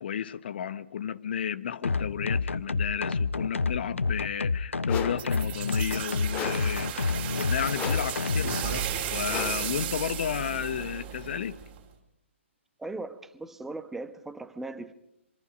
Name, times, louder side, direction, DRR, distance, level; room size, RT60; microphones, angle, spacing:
voice 1, 0.0-11.6, left 8 dB, 55° left, 1.1 m, -33 dB
sound 1, 1.8-8.6, left 4 dB, 80° left, 0.8 m, -29 dB
sound 2, 4.9-5.3 6.3-6.8 7.7-8.2 9.3-9.8, left 7 dB, 20° left, 2.0 m, -36 dB
sound 3, 5.2-11.8, right 10 dB, 25° right, 4.4 m, -35 dB
voice 2, 12.8-14.9, right 2 dB, 5° right, 1.1 m, -38 dB
27.0 x 24.5 x 5.2 m
figure-of-eight pair, 130°, 7 cm